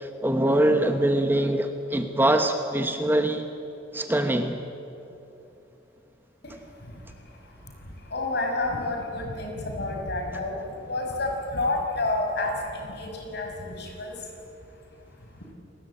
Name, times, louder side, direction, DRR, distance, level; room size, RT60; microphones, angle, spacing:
voice 1, 0.0-3.5 3.9-4.6, right 1 dB, 10° right, 6 dB, 1.0 m, -23 dB
voice 2, 8.1-10.6 10.9-14.1, left 2 dB, 60° left, 2 dB, 5.6 m, -29 dB
28.5 x 20.0 x 8.9 m, 2.9 s
head